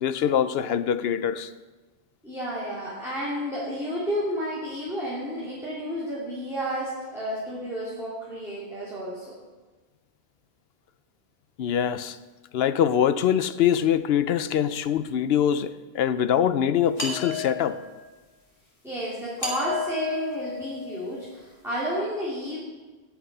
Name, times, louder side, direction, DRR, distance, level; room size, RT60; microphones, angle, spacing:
voice 1, 0.0-1.5 11.6-12.2 12.5-17.8, left 9 dB, 70° left, 0.8 m, -23 dB
voice 2, 2.2-9.4 18.8-22.6, equal, ahead, 3.0 m, -31 dB
sound 1, 17.0-18.1 19.4-21.3, left 4 dB, 30° left, 2.5 m, -33 dB
17.5 x 6.0 x 5.6 m
omnidirectional pair, 1.1 m